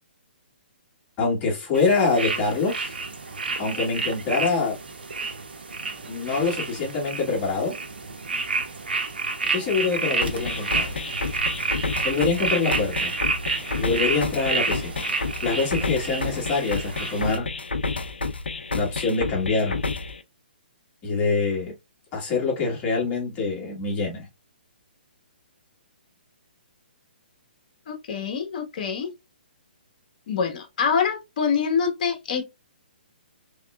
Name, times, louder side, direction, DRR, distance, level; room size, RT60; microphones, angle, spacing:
voice 1, 1.2-2.9 3.6-4.8 6.1-7.7 9.5-10.9 12.0-13.1 13.8-15.0 15.4-17.5 18.7-19.8 21.0-21.7 22.1-24.3, left 4 dB, 25° left, 2.0 m, -25 dB
sound 1, 1.7-17.4, right 4 dB, 75° right, 0.8 m, -30 dB
sound 2, 10.2-20.2, left 3 dB, 85° left, 0.5 m, -30 dB
voice 2, 27.9-29.1 30.3-32.4, left 6 dB, 50° left, 1.3 m, -25 dB
3.5 x 3.3 x 2.3 m
figure-of-eight pair, 130°, 6 cm